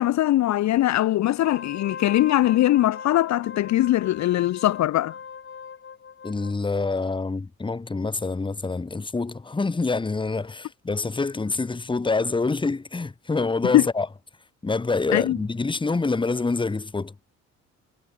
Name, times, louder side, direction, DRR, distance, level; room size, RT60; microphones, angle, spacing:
voice 1, 0.0-5.1 13.7-13.9 15.1-15.4, left 14 dB, 65° left, 0.7 m, -21 dB
Wind instrument woodwind instrument, 1.3-6.6, left 6 dB, 40° left, 3.5 m, -40 dB
voice 2, 6.2-14.1 14.6-17.1, left 3 dB, 15° left, 1.1 m, -26 dB
cardioid pair, 90°, 30 cm